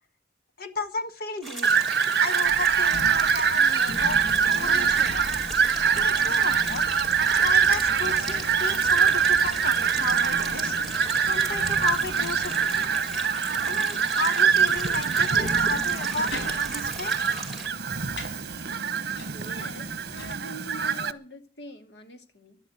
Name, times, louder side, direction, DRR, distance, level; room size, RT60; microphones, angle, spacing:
voice 1, 0.6-1.7 2.2-4.2 4.5-5.3 5.9-6.9 7.4-10.8 11.2-12.9 13.6-17.1, left 3 dB, 55° left, 10 dB, 1.5 m, -33 dB
sound 1, 1.4-17.7, right 2 dB, ahead, 4.6 m, -38 dB
Fowl, 1.6-21.1, right 7 dB, 60° right, 1.0 m, -24 dB
sound 2, 2.4-20.3, left 1 dB, 90° left, 4.8 m, -40 dB
voice 2, 19.3-22.6, right 1 dB, 70° left, 7 dB, 2.2 m, -44 dB
13.0 x 11.5 x 9.3 m, 0.44 s
head